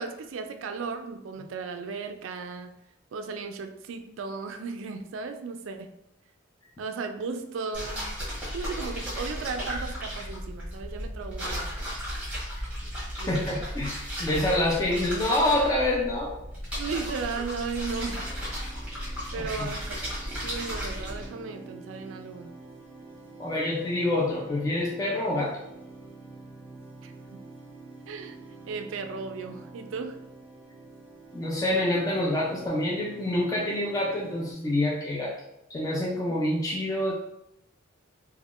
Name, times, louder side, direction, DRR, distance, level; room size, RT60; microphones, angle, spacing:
voice 1, 0.0-2.7 3.1-5.9 6.8-8.0 8.5-11.9 13.2-13.6 16.8-18.2 19.3-20.0 20.4-22.5 27.0-27.4 28.1-28.4 28.7-30.2, right 4 dB, 75° right, 7 dB, 0.3 m, -35 dB
sound 1, 7.7-21.3, equal, 5° right, 0.9 m, -35 dB
voice 2, 13.3-16.3 19.4-19.7 23.4-25.6 31.3-35.3 35.7-37.1, left 1 dB, 15° left, -4 dB, 0.3 m, -27 dB
sound 2, 17.8-34.5, right 3 dB, 30° right, 0.6 m, -47 dB
3.4 x 2.2 x 2.4 m, 0.85 s
head